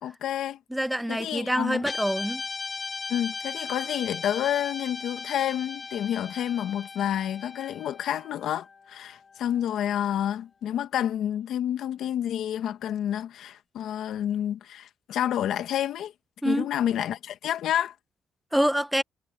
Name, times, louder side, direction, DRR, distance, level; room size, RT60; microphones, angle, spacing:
voice 1, 0.0-0.6 1.1-1.8 3.1-16.1 16.4-17.9, left 10 dB, 75° left, 1.6 m, -29 dB
voice 2, 0.7-2.4 16.4-16.7 18.5-19.0, equal, 5° right, 0.8 m, -26 dB
Guitar, 1.8-10.3, left 4 dB, 30° left, 2.3 m, -38 dB
cardioid pair, 90°, 0 cm